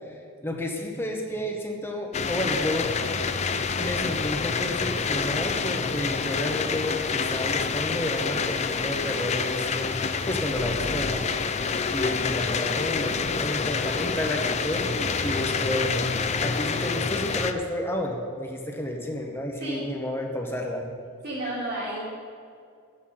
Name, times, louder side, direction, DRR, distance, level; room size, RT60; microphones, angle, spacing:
voice 1, 0.4-2.9 3.8-9.9 10.3-16.1 16.4-20.8, left 1 dB, 10° left, 1 dB, 1.0 m, -31 dB
sound 1, 2.1-17.5, left 5 dB, 30° left, 0.4 m, -27 dB
voice 2, 21.2-22.0, right 1 dB, 50° right, -8 dB, 2.7 m, -31 dB
13.0 x 8.7 x 5.6 m, 2.4 s
head